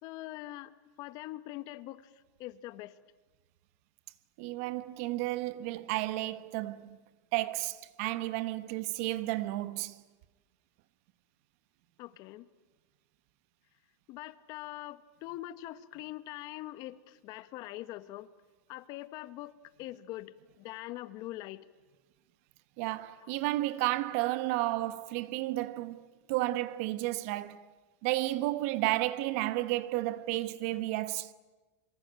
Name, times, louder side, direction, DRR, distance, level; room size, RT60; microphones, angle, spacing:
voice 1, 0.0-0.7 1.0-2.1 2.4-2.9 12.0-12.5 14.1-18.3 18.7-21.7 23.2-23.3, left 16 dB, 45° left, 1.2 m, -43 dB
voice 2, 4.4-7.0 7.3-9.9 22.8-26.0 26.3-27.6 28.0-31.3, right 17 dB, 55° right, 1.2 m, -32 dB
25.5 x 23.5 x 9.0 m
supercardioid pair, 140°, 9 cm